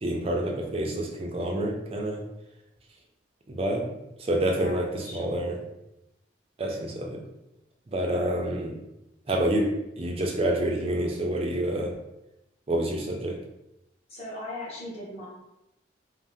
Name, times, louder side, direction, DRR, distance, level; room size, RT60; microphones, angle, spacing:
voice 1, 0.0-2.2 3.5-3.8 4.2-5.6 6.6-7.2 7.9-8.7 9.3-9.7 10.0-11.9 12.7-13.4, right 1 dB, 30° right, 0 dB, 0.4 m, -27 dB
voice 2, 4.5-5.5 14.1-15.3, left 1 dB, 30° left, -6 dB, 0.8 m, -39 dB
2.6 x 2.0 x 3.4 m, 0.90 s
head